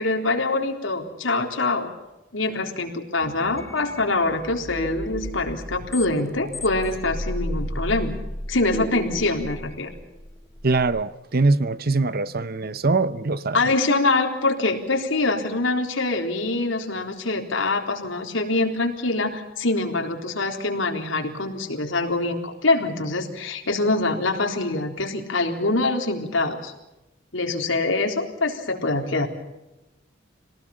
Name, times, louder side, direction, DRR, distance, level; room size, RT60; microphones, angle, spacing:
voice 1, 0.0-1.9 2.3-8.2 8.5-9.9 13.5-26.7 27.3-29.3, left 2 dB, 90° left, 3.9 m, -24 dB
sound 1, 3.2-11.0, equal, 15° left, 1.0 m, -33 dB
voice 2, 10.6-13.6, right 3 dB, 50° right, 0.9 m, -22 dB
27.0 x 19.0 x 7.2 m
head